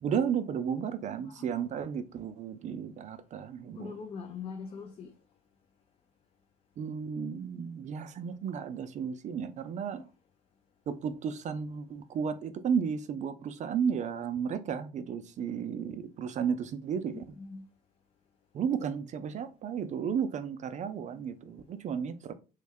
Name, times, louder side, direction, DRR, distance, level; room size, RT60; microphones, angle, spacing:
voice 1, 0.0-3.9 6.8-10.0 10.9-17.2 18.5-22.3, right 7 dB, 45° right, 0.4 m, -33 dB
voice 2, 1.2-1.6 3.7-5.1 17.1-17.6, left 5 dB, 35° left, 0.4 m, -42 dB
3.1 x 2.1 x 3.4 m
cardioid pair, 110°, 17 cm